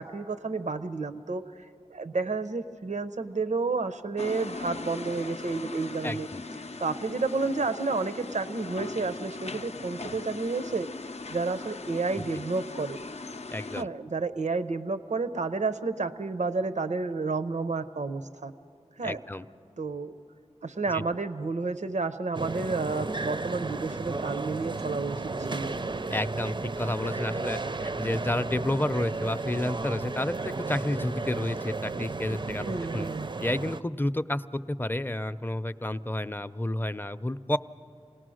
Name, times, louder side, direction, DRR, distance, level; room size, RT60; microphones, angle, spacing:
voice 1, 0.0-6.3 6.8-10.9 11.3-13.0 13.8-18.5 19.0-19.2 19.8-20.1 20.6-25.7 32.5-33.3, right 3 dB, 90° right, 10 dB, 0.6 m, -31 dB
sound 1, 4.2-13.8, left 3 dB, 65° left, 0.5 m, -39 dB
voice 2, 6.0-6.4 13.5-13.9 19.0-19.5 20.9-21.0 26.1-33.1 33.4-37.6, left 1 dB, 15° left, 12 dB, 0.5 m, -30 dB
sound 2, 22.3-33.8, right 3 dB, 40° right, 0.4 m, -34 dB
27.5 x 18.5 x 6.3 m, 2.6 s
wide cardioid pair, 45°, 12 cm